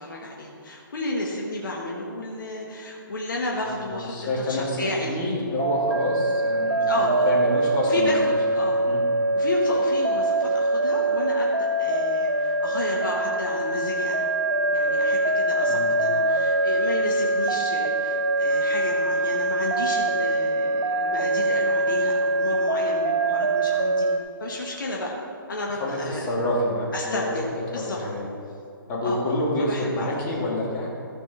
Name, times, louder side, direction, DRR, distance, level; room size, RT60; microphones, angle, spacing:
voice 1, 0.0-5.2 6.8-7.4 7.8-8.9 9.3-14.3 14.7-24.1 24.4-25.1 25.5-26.3 26.9-28.0 29.0-30.2, left 2 dB, 65° left, -2 dB, 1.6 m, -32 dB
voice 2, 3.9-8.1 8.8-9.0 15.7-15.9 25.8-27.2 27.9-28.3 28.9-30.9, left 1 dB, 25° left, -5 dB, 2.8 m, -27 dB
sound 1, 5.6-24.2, right 2 dB, 80° right, 0.8 m, -23 dB
14.0 x 5.3 x 5.6 m, 2.7 s
figure-of-eight pair, 135°, 12 cm